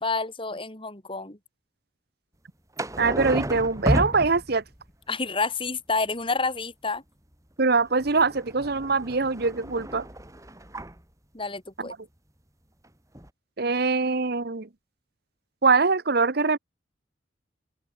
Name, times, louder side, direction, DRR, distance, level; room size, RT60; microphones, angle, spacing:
voice 1, 0.0-1.4 5.1-7.0 11.3-11.9, left 3 dB, 30° left, 3.9 m, -29 dB
sound 1, 2.8-4.9 7.8-11.0 12.8-12.9 13.2-13.3, right 1 dB, 15° right, 4.2 m, -31 dB
voice 2, 3.0-4.6 7.6-10.0 11.8-11.9 13.6-14.7 15.6-16.6, right 4 dB, 55° right, 1.0 m, -23 dB
open air
head